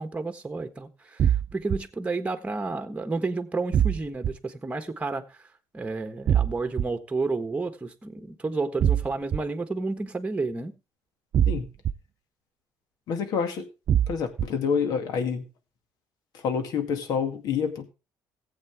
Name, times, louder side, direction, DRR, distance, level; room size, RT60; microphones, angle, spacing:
voice 1, 0.0-5.2 5.7-10.7, right 3 dB, 20° right, 1.4 m, -31 dB
sound 1, 1.2-1.8 3.7-4.3 6.3-6.8 8.8-9.4 11.3-11.9 13.9-14.5, right 9 dB, 55° right, 0.5 m, -22 dB
voice 2, 13.1-13.7 14.1-15.4 16.3-17.9, left 6 dB, 75° left, 2.1 m, -27 dB
15.5 x 8.3 x 3.5 m
supercardioid pair, 80°, 7 cm